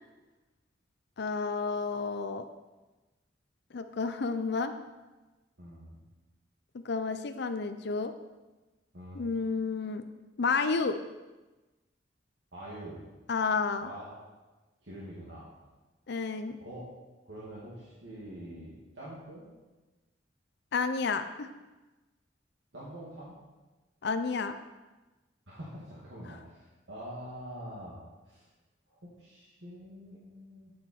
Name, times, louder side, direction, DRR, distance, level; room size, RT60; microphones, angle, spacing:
voice 1, 1.2-2.5 3.7-4.7 6.8-8.1 9.1-10.0 10.4-11.0 13.3-13.9 16.1-16.6 20.7-21.5 24.0-24.6, left 4 dB, 60° left, 8 dB, 0.6 m, -30 dB
voice 2, 5.6-6.0 8.9-9.3 12.5-13.0 13.8-14.1 14.8-15.5 16.6-16.8 17.2-19.5 22.7-23.3 25.5-28.0 28.3-28.5 28.9-30.7, equal, 70° right, -8 dB, 2.3 m, -45 dB
9.3 x 8.2 x 4.5 m, 1.2 s
head